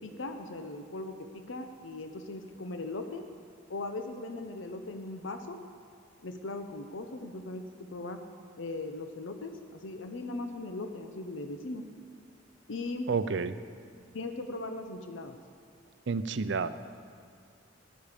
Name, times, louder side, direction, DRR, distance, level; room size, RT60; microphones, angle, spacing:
voice 1, 0.0-3.2 3.7-5.6 6.2-7.6 7.9-8.2 8.6-11.8 12.7-13.1 14.1-15.4, left 2 dB, 90° left, 6 dB, 0.8 m, -39 dB
voice 2, 13.1-13.5 16.1-16.7, right 4 dB, 65° right, 13 dB, 0.5 m, -29 dB
15.5 x 10.0 x 5.1 m, 2.2 s
head